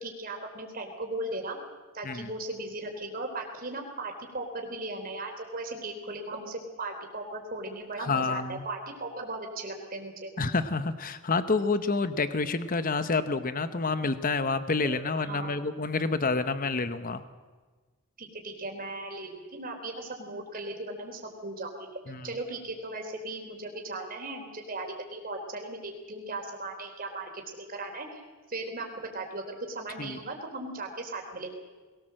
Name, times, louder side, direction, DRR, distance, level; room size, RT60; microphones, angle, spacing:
voice 1, 0.0-1.6 1.9-10.3 14.8-15.0 15.3-15.6 18.2-28.2 28.5-31.5, right 2 dB, 40° right, 2 dB, 3.9 m, -37 dB
voice 2, 8.0-8.6 10.4-17.2 22.1-22.3 30.0-30.2, left 3 dB, 40° left, 12 dB, 0.9 m, -28 dB
21.5 x 18.5 x 7.7 m, 1.4 s
head